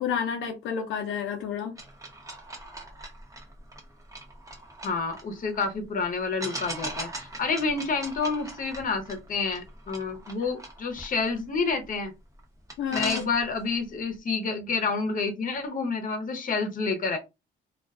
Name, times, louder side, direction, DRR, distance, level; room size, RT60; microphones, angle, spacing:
voice 1, 0.0-1.8 12.8-13.2, left 7 dB, 75° left, 0.5 m, -30 dB
sound 1, 1.8-5.7 6.4-12.0 12.4-12.5 12.7-13.8, right 1 dB, 15° right, 0.9 m, -40 dB
voice 2, 4.8-12.1 12.9-17.2, left 4 dB, 45° left, 0.8 m, -29 dB
2.4 x 2.2 x 2.4 m
cardioid pair, 90°, 20 cm